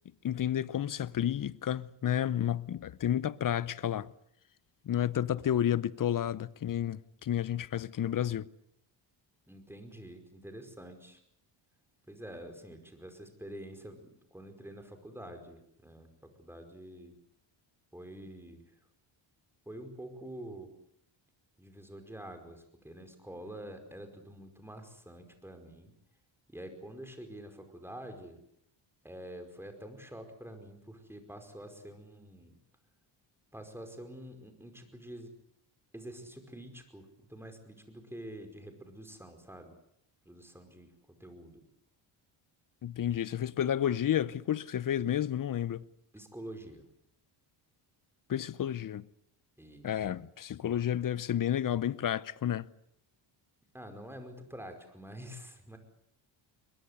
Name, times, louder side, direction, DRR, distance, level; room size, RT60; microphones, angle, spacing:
voice 1, 0.2-4.1 4.9-8.5 42.8-45.9 48.3-49.1 49.8-52.7, left 10 dB, 40° left, 0.8 m, -31 dB
voice 2, 9.5-11.2 12.1-17.1 17.9-18.7 19.7-20.7 21.6-25.9 26.5-28.4 29.0-32.6 33.5-35.3 35.9-39.8 40.3-40.9 41.2-41.6 46.1-46.8 49.6-49.9 53.7-55.8, right 1 dB, 5° right, 5.1 m, -47 dB
22.0 x 22.0 x 8.2 m
cardioid pair, 105°, 48 cm